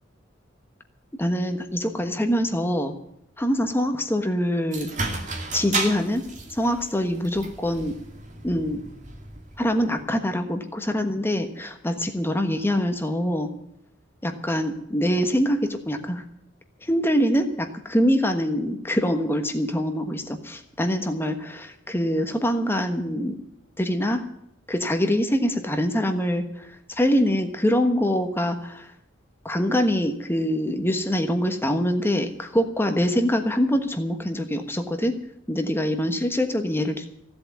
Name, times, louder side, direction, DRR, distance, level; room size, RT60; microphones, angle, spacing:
voice 1, 1.2-2.9 3.4-4.9 5.5-6.2 6.5-8.0 8.4-8.8 9.6-13.5 14.2-16.2 16.8-23.4 23.8-24.2 24.7-28.9 29.4-35.1 35.5-37.0, equal, 10° left, 6 dB, 1.3 m, -24 dB
sound 1, 4.7-10.0, right 3 dB, 40° right, 2.3 m, -33 dB
16.0 x 7.8 x 9.4 m, 0.76 s
head